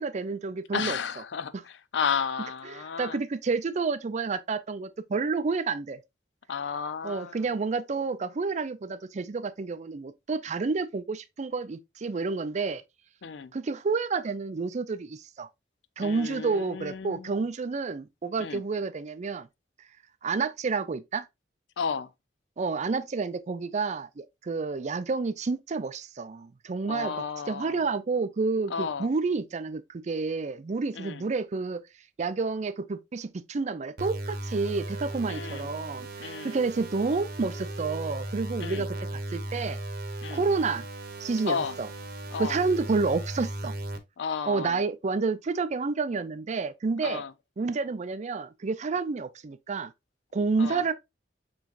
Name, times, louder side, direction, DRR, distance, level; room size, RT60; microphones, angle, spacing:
voice 1, 0.0-1.0 2.7-6.0 7.0-12.8 13.5-15.5 16.0-19.5 20.2-21.3 22.6-27.1 27.5-31.8 32.2-39.8 40.3-40.9 41.2-41.9 42.4-43.7 44.5-47.2 47.6-49.9 50.3-50.9, right 4 dB, 40° right, 0.4 m, -29 dB
voice 2, 0.7-3.2 6.5-7.4 13.2-13.5 16.0-17.3 18.4-18.6 21.8-22.1 26.9-27.8 28.7-29.1 30.9-31.2 35.3-35.7 36.2-36.6 38.6-38.9 40.2-40.4 41.5-41.8 42.3-42.6 44.2-44.8 47.0-47.3 50.6-50.8, left 6 dB, 80° left, 0.5 m, -33 dB
sound 1, 34.0-44.0, right 1 dB, 55° right, 0.8 m, -37 dB
7.0 x 3.1 x 2.4 m
head